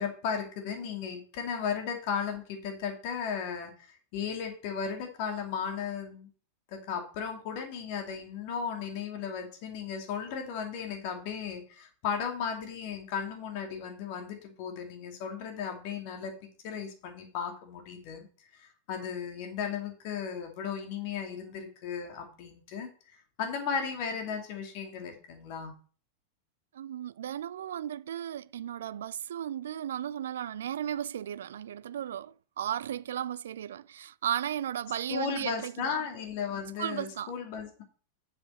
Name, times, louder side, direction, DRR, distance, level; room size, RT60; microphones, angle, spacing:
voice 1, 0.0-6.3 6.7-16.3 16.6-25.7 35.1-37.8, left 6 dB, 45° left, 2.5 m, -35 dB
voice 2, 26.7-36.0 36.8-37.3, right 10 dB, 60° right, 0.3 m, -35 dB
7.5 x 7.3 x 5.4 m
figure-of-eight pair, 90°, 0 cm